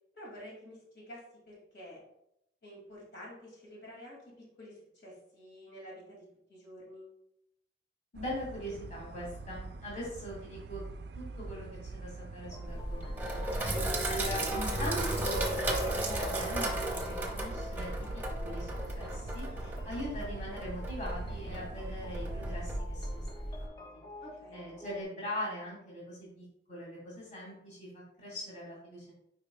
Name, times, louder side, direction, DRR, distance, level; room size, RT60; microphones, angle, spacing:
voice 1, 0.1-2.0 2.6-7.1 24.2-24.6, equal, 65° left, -4 dB, 2.3 m, -50 dB
voice 2, 8.1-10.8 11.2-18.7 18.9-23.2 24.5-29.1, equal, 40° left, -5 dB, 2.1 m, -41 dB
sound 1, 8.1-22.8, right 3 dB, 60° right, 0.3 m, -45 dB
sound 2, 12.4-25.0, left 2 dB, 25° left, 0.7 m, -50 dB
Sink (filling or washing), 12.7-23.7, right 1 dB, 10° right, 0.8 m, -35 dB
8.8 x 4.9 x 2.2 m, 0.79 s
head